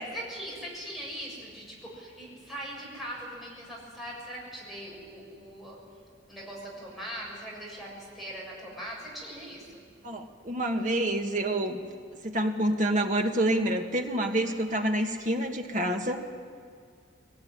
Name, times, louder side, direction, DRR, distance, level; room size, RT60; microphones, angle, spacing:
voice 1, 0.0-5.8 6.3-9.8, equal, ahead, -5 dB, 7.0 m, -41 dB
voice 2, 10.0-11.8 12.2-16.2, right 1 dB, 40° right, 3 dB, 1.9 m, -27 dB
21.5 x 20.0 x 9.8 m, 2.1 s
head